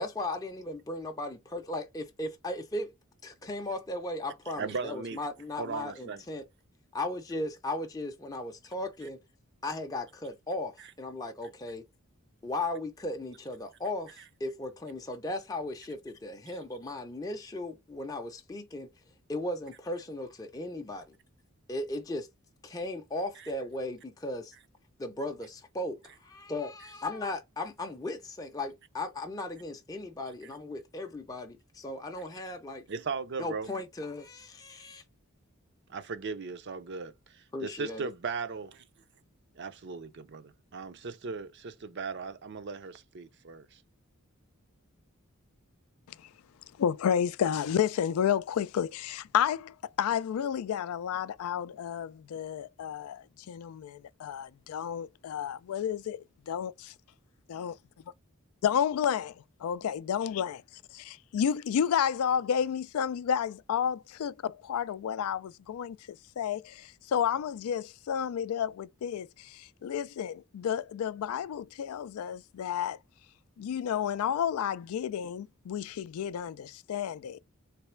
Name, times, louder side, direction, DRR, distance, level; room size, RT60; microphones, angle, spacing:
voice 1, 0.0-2.9 3.2-6.4 6.9-9.2 9.6-11.8 12.4-18.9 19.3-21.2 21.7-22.3 22.6-24.5 25.0-32.8 33.4-35.0 37.5-38.1, left 2 dB, 15° left, 0.5 m, -37 dB
voice 2, 4.6-5.2 5.6-6.2 32.9-33.7 35.9-38.8 39.6-43.8, right 5 dB, 55° right, 0.5 m, -37 dB
voice 3, 46.8-56.7 57.5-57.8 58.6-59.4 59.6-60.6 60.9-66.0 66.4-73.0 73.6-77.4, left 8 dB, 85° left, 0.3 m, -31 dB
3.3 x 3.2 x 3.2 m
head